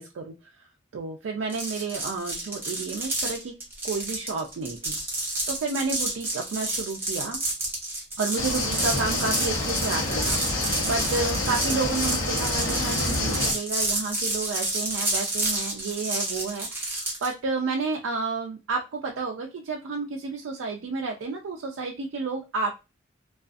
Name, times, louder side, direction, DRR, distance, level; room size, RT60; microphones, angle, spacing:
voice 1, 0.0-3.5 3.8-4.9 5.5-7.4 8.2-22.7, right 4 dB, 90° right, 1 dB, 0.4 m, -31 dB
sound 1, 1.5-17.3, right 2 dB, 10° right, 0.8 m, -30 dB
sound 2, 8.4-13.5, left 2 dB, 90° left, 0.8 m, -27 dB
2.3 x 2.3 x 2.5 m, 0.27 s
head